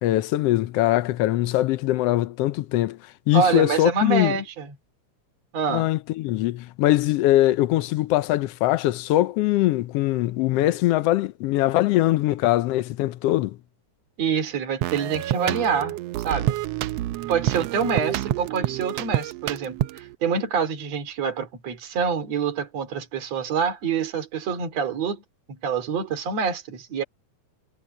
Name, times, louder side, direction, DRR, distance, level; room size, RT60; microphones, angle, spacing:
voice 1, 0.0-3.0 3.3-4.4 5.7-13.6, left 15 dB, 75° left, 1.4 m, -22 dB
voice 2, 3.3-4.7 5.5-5.9 14.2-16.0 16.2-16.6 17.3-25.2 25.5-27.0, right 6 dB, 60° right, 4.0 m, -26 dB
sound 1, 14.8-20.2, right 14 dB, 75° right, 1.6 m, -28 dB
omnidirectional pair, 3.4 m